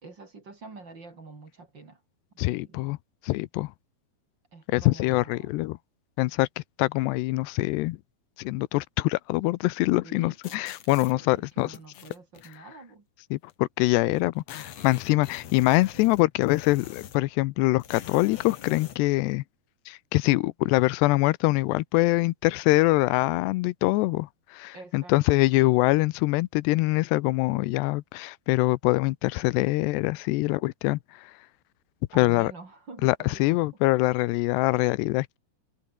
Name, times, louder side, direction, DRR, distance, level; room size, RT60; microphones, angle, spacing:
voice 1, 0.0-2.0 2.5-2.9 4.5-5.6 10.0-10.7 10.9-13.1 15.9-16.1 24.7-25.4 32.1-33.7, right 3 dB, 30° right, 3.3 m, -47 dB
voice 2, 2.4-3.0 3.2-3.7 4.7-5.8 6.2-8.0 8.4-11.7 13.3-19.4 19.9-31.0 32.2-32.5 33.0-35.4, left 20 dB, 90° left, 2.9 m, -24 dB
sound 1, 10.4-11.1 11.7-12.6 13.5-13.6 13.8-13.9 14.2-17.3 17.8-19.0, left 9 dB, 50° left, 2.2 m, -44 dB
omnidirectional pair, 4.7 m